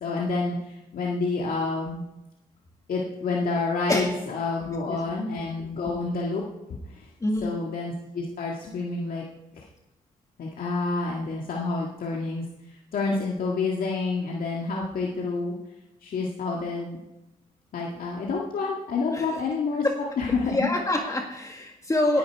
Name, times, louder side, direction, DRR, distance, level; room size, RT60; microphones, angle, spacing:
voice 1, 0.0-2.0 2.9-6.4 6.9-7.1 7.4-9.2 9.5-9.6 10.4-15.5 16.0-17.0 17.7-19.9 20.2-20.7 22.1-22.2, left 3 dB, 70° left, -2 dB, 1.9 m, -28 dB
voice 2, 7.2-7.6 19.1-19.3 19.8-20.0 20.4-22.2, left 1 dB, 20° left, 2 dB, 1.7 m, -26 dB
19.5 x 9.8 x 4.7 m, 0.94 s
cardioid pair, 120°, 15 cm